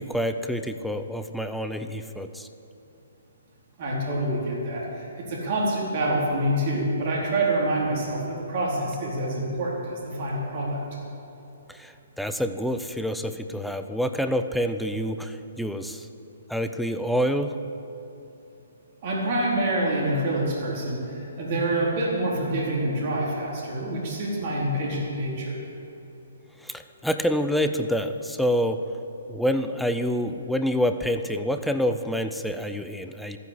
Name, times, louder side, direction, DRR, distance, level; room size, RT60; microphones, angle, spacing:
voice 1, 0.0-2.5 11.7-16.1 16.5-17.6 26.6-28.8 29.3-33.4, equal, ahead, 8 dB, 0.6 m, -27 dB
voice 2, 3.8-10.8 19.0-25.6, right 1 dB, 45° right, -3 dB, 4.0 m, -26 dB
13.0 x 10.0 x 8.1 m, 3.0 s
figure-of-eight pair, 130°, 0 cm